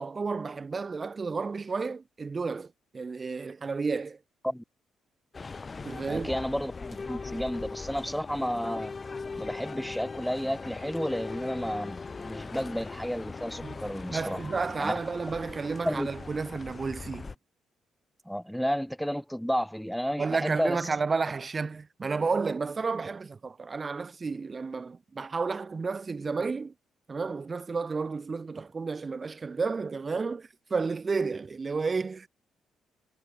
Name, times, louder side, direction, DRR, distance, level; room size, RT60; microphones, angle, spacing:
voice 1, 0.0-4.2 5.8-6.3 13.6-13.8 14.1-17.3 20.2-26.7 27.1-32.3, right 4 dB, 30° right, 5.5 m, -31 dB
sound 1, 5.3-17.4, left 4 dB, 30° left, 5.9 m, -40 dB
voice 2, 6.1-8.9 9.4-14.4 14.8-14.9 15.9-16.1 18.3-20.8, equal, ahead, 2.0 m, -32 dB
cardioid pair, 90°, 0 cm